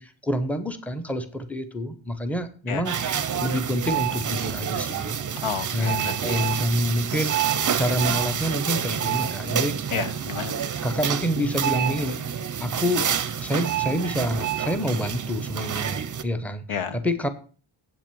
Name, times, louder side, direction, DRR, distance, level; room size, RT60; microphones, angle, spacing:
voice 1, 0.0-3.0 3.4-5.2 5.7-7.3 7.8-9.8 10.8-12.2 12.6-13.1 13.4-17.3, equal, 5° left, 0.8 m, -27 dB
sound 1, 2.8-16.2, right 8 dB, 40° right, 0.6 m, -28 dB
voice 2, 5.4-6.4 9.9-10.5 16.7-17.0, left 7 dB, 90° left, 1.0 m, -31 dB
8.2 x 6.1 x 6.9 m
wide cardioid pair, 170°, 49 cm